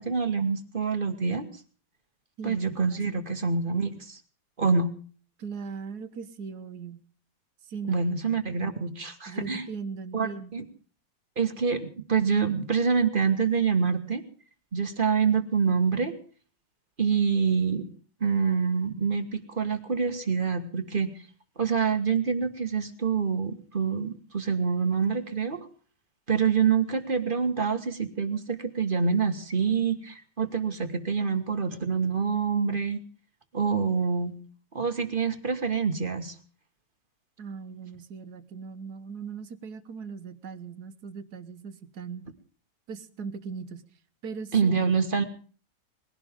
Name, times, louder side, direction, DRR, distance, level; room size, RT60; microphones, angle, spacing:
voice 1, 0.0-1.5 2.4-4.2 4.6-4.9 7.9-9.7 10.1-10.6 11.4-14.2 14.7-16.2 17.0-17.9 18.2-21.1 21.6-25.6 26.3-33.0 33.5-34.3 34.7-36.3 44.5-45.2, right 5 dB, 30° right, 8 dB, 1.6 m, -26 dB
voice 2, 5.4-7.0 7.7-8.1 9.3-10.6 37.4-42.2 42.9-43.8 44.2-44.7, right 5 dB, 65° right, 11 dB, 1.6 m, -39 dB
21.0 x 16.5 x 3.7 m, 0.42 s
omnidirectional pair, 1.9 m